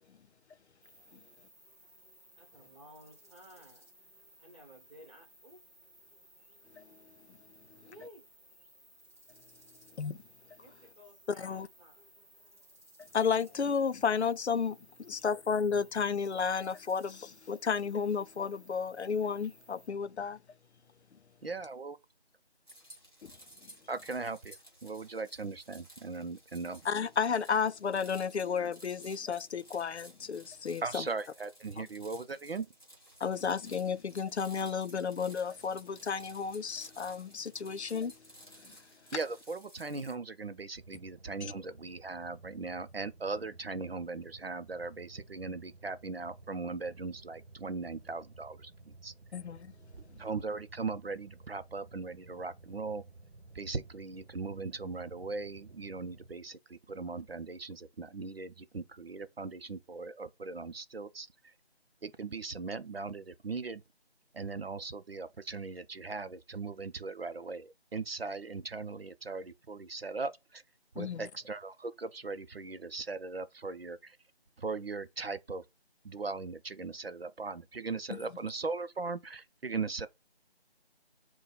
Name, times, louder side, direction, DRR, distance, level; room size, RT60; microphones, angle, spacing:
sound 1, 0.8-19.9, right 1 dB, 15° right, 1.9 m, -60 dB
voice 1, 2.4-3.9 4.4-5.6 7.7-8.3 10.6-12.1, equal, 30° right, 1.5 m, -55 dB
voice 2, 11.4-11.7 13.1-20.4 23.2-23.3 26.8-31.0 33.2-38.1 38.6-38.8 49.3-49.7 71.0-71.3 78.1-78.2, left 6 dB, 90° left, 0.5 m, -32 dB
voice 3, 21.4-22.0 23.9-26.8 30.8-32.7 39.1-49.1 50.2-53.0 53.5-61.5 62.0-63.8 64.3-70.6 70.9-74.2 74.6-75.6 76.0-80.1, right 4 dB, 65° right, 0.6 m, -39 dB
sound 2, 22.7-40.2, equal, 20° left, 1.2 m, -56 dB
sound 3, 40.8-56.3, right 3 dB, 80° right, 0.9 m, -55 dB
3.9 x 2.2 x 4.0 m
figure-of-eight pair, 175°, 32 cm